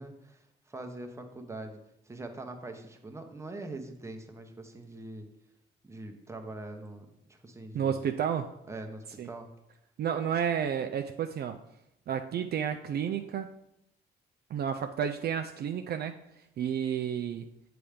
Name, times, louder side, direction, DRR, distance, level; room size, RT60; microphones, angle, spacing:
voice 1, 0.0-5.3 5.8-8.1 8.7-9.5, right 2 dB, 15° right, 4 dB, 0.9 m, -43 dB
voice 2, 7.7-8.5 9.2-9.3 10.0-11.6 12.1-13.5 14.5-16.2 16.6-17.5, right 8 dB, 55° right, 6 dB, 0.4 m, -31 dB
6.9 x 3.4 x 5.1 m, 0.83 s
cardioid pair, 90°, 20 cm